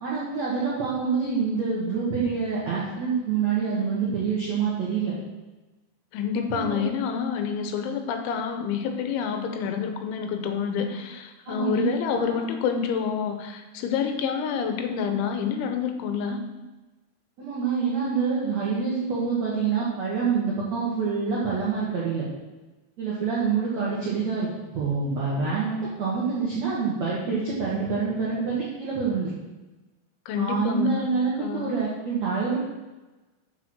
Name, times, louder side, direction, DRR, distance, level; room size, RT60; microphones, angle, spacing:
voice 1, 0.0-5.1 6.5-6.8 11.5-12.4 17.4-22.3 23.0-24.5 24.7-29.3 30.4-32.6, right 5 dB, 70° right, -6 dB, 1.6 m, -26 dB
voice 2, 6.1-16.4 30.3-31.1 31.4-31.8, left 7 dB, 85° left, 5 dB, 3.2 m, -28 dB
6.7 x 6.3 x 6.0 m, 1.1 s
omnidirectional pair, 5.3 m